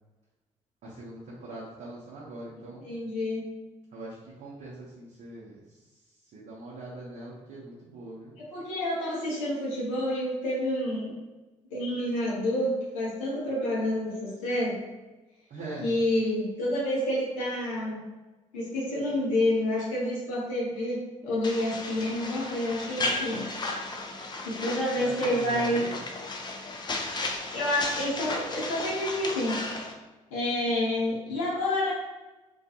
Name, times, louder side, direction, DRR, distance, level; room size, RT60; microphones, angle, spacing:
voice 1, 0.8-2.9 3.9-6.0 6.3-8.3 15.5-15.9 25.0-26.1, right 2 dB, 50° right, -7 dB, 0.7 m, -42 dB
voice 2, 2.8-3.4 8.4-11.1 11.7-14.8 15.8-18.0 18.5-23.9 24.4-25.8 27.5-29.8 30.3-31.9, left 1 dB, 75° left, -6 dB, 0.7 m, -29 dB
sound 1, 21.4-29.9, left 2 dB, 25° left, 0.4 m, -34 dB
2.4 x 2.3 x 2.7 m, 1.1 s
figure-of-eight pair, 45°, 17 cm